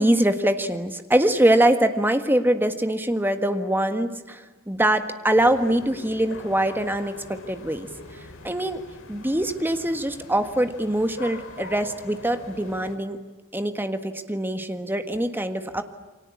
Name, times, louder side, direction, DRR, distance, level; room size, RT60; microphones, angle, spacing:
voice 1, 0.0-7.9 8.4-8.8 9.1-13.2 13.5-15.8, right 1 dB, 10° right, 8 dB, 1.6 m, -23 dB
sound 1, 5.4-13.0, left 2 dB, 65° left, 3.9 m, -42 dB
29.0 x 24.0 x 8.5 m, 1.2 s
head